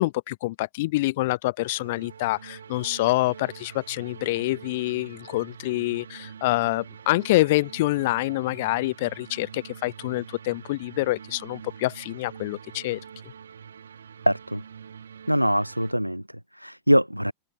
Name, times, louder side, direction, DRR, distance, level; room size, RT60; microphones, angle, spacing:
voice 1, 0.0-13.0, left 19 dB, 50° left, 0.6 m, -26 dB
sound 1, 1.6-15.9, right 7 dB, 70° right, 1.9 m, -45 dB
voice 2, 14.3-14.6 15.3-17.3, equal, 90° right, 0.4 m, -23 dB
open air
figure-of-eight pair, 90°, 0 cm